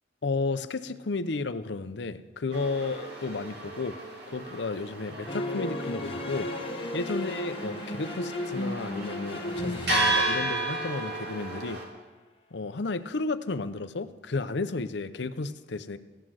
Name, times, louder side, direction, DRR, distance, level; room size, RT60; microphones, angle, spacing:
voice 1, 0.2-4.0 4.3-6.5 6.9-11.8 12.5-16.0, left 3 dB, 65° left, 12 dB, 0.7 m, -33 dB
sound 1, 2.5-11.9, right 2 dB, 60° right, 2.9 m, -33 dB
sound 2, 5.3-11.1, left 1 dB, 30° left, 1.2 m, -35 dB
15.5 x 9.4 x 6.3 m, 1.2 s
head